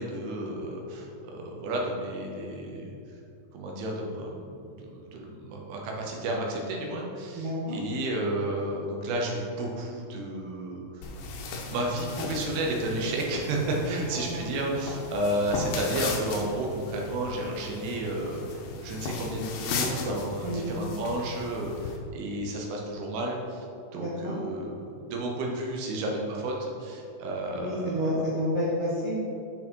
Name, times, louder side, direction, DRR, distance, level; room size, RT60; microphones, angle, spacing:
voice 1, 0.0-3.0 3.5-11.0 11.7-23.7 23.9-28.0, right 1 dB, 85° right, 0 dB, 3.0 m, -32 dB
voice 2, 7.3-7.7 14.1-14.4 20.4-20.7 23.9-24.3 27.5-29.2, equal, 60° right, -8 dB, 1.7 m, -30 dB
sound 1, 11.0-22.0, left 4 dB, 90° left, 2.7 m, -36 dB
7.1 x 6.1 x 4.5 m, 2.6 s
omnidirectional pair, 4.3 m